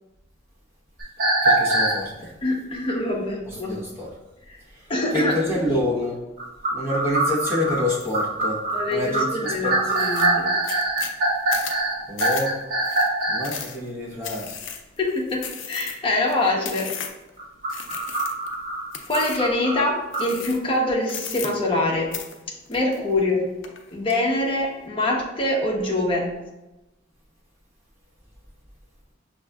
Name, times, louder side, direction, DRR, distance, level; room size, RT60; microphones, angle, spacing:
sound 1, 1.0-2.0 6.4-13.5 17.4-20.3, right 2 dB, 50° right, 0.9 m, -23 dB
voice 1, 1.4-2.3 3.5-4.1 4.7-4.8 5.1-6.2 6.7-8.6 8.9-9.8 12.1-12.5 13.3-14.6, left 1 dB, 15° right, -7 dB, 1.0 m, -27 dB
voice 2, 2.4-3.7 4.5-4.6 4.9-5.6 8.7-10.5 15.0-16.9 19.1-22.1 22.7-23.5 23.9-26.3, left 2 dB, 30° left, -2 dB, 0.8 m, -24 dB
sound 2, 8.0-8.3 8.7-9.2 9.6-9.7 9.9-17.3 17.7-18.5 18.9-19.5 20.1-20.7 21.0-21.9 22.1-23.3 23.6-24.2, left 7 dB, 80° left, 0.5 m, -35 dB
5.9 x 2.6 x 2.3 m, 1.0 s
head